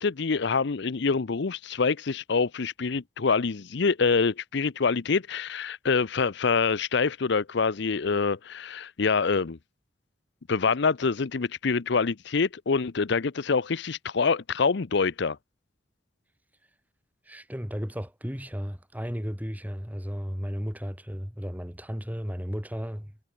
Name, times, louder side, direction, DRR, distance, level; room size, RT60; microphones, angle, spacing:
voice 1, 0.0-9.6 10.5-15.4, left 4 dB, 65° left, 0.6 m, -26 dB
voice 2, 17.3-23.2, equal, 10° right, 5.6 m, -34 dB
head